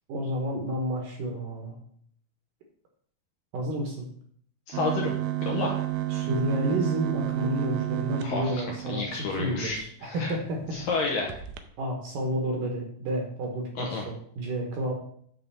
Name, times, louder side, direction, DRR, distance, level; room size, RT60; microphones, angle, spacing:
voice 1, 0.1-1.8 3.5-4.1 6.1-10.8 11.8-14.9, equal, 65° right, 1 dB, 2.3 m, -30 dB
voice 2, 4.7-5.1 5.4-5.8 8.2-10.4 10.7-11.4 13.8-14.1, left 4 dB, 70° left, -1 dB, 2.2 m, -30 dB
sound 1, 4.7-9.8 10.3-10.4 10.7-10.9 11.3-11.6, right 15 dB, 85° right, 2.2 m, -31 dB
9.4 x 3.7 x 6.8 m, 0.62 s
omnidirectional pair, 5.0 m